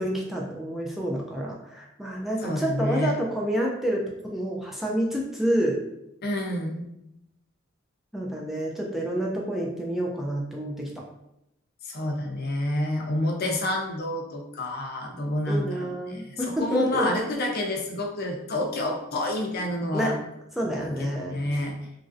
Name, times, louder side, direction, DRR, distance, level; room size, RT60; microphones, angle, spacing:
voice 1, 0.0-4.0 4.3-5.8 8.1-10.9 15.5-17.1 19.9-20.2 20.6-21.3, equal, ahead, -2 dB, 0.3 m, -28 dB
voice 2, 2.4-3.1 6.2-6.8 11.8-16.2 16.6-20.1 20.6-21.8, left 1 dB, 50° left, 1 dB, 0.5 m, -28 dB
3.0 x 2.4 x 2.5 m, 0.82 s
head